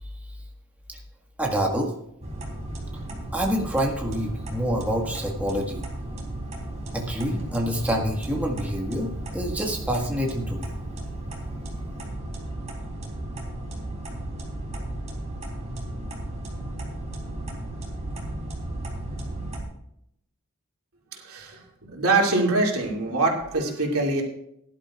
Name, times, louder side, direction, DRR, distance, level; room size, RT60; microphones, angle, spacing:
voice 1, 1.4-1.9 3.3-5.8 6.9-10.7, equal, 5° right, -1 dB, 1.7 m, -27 dB
sound 1, 2.2-19.6, right 1 dB, 35° right, 3.6 m, -34 dB
voice 2, 21.3-24.2, right 3 dB, 90° right, -1 dB, 2.7 m, -24 dB
18.5 x 11.5 x 2.5 m, 0.76 s
head